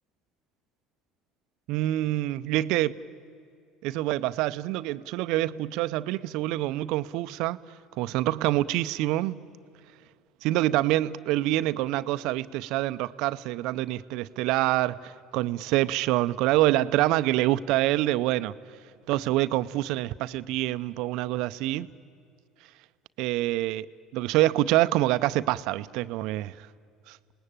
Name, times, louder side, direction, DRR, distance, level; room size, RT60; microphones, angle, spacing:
voice 1, 1.7-2.9 3.8-7.6 8.0-9.4 10.4-18.5 19.1-21.9 23.2-23.9 24.1-26.7 27.1-27.2, right 16 dB, 70° right, 0.6 m, -26 dB
27.5 x 19.5 x 8.9 m
hypercardioid pair, 75°, 0 cm